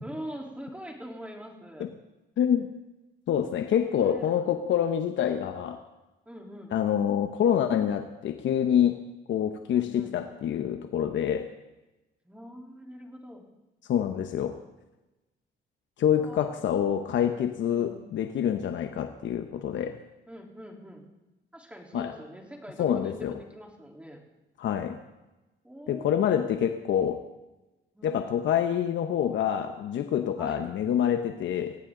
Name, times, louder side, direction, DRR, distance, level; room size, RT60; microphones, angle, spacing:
voice 1, 0.0-1.9 3.8-4.4 6.3-6.8 9.7-10.1 12.2-13.4 16.1-16.5 17.7-17.9 20.3-21.0 21.5-24.2 25.6-26.4 27.9-28.2 30.4-30.7, equal, 5° right, 0 dB, 3.7 m, -43 dB
voice 2, 2.4-2.7 3.3-5.8 6.7-9.0 9.3-11.5 13.9-14.6 16.0-20.0 21.9-22.1 22.8-23.3 24.6-25.0 25.9-27.2 28.0-31.8, left 9 dB, 70° left, 7 dB, 1.0 m, -26 dB
18.5 x 16.5 x 3.9 m, 1.0 s
cardioid pair, 90°, 20 cm